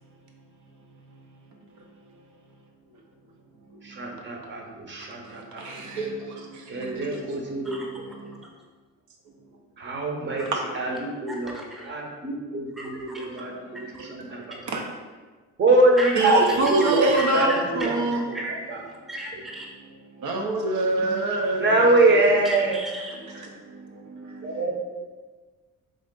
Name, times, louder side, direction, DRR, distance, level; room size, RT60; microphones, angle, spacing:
voice 1, 0.9-2.3 3.6-4.3 4.8-8.4 10.4-11.1 13.3-14.8 16.1-18.3 19.0-19.1 19.9-22.3 23.3-24.7, right 2 dB, 75° right, 0.6 m, -29 dB
voice 2, 4.0-5.6 6.7-7.8 9.8-10.4 10.8-11.5 11.9-14.4 15.6-16.4 16.7-17.5 21.6-22.8 24.4-24.7, right 2 dB, 40° right, 0.8 m, -23 dB
voice 3, 11.3-11.9 12.7-13.3 13.9-14.0 16.0-16.6 17.1-17.6 18.3-18.6 19.1-19.7 22.4-23.5, equal, ahead, 0.7 m, -36 dB
3.7 x 2.5 x 3.7 m
cardioid pair, 90°, 30 cm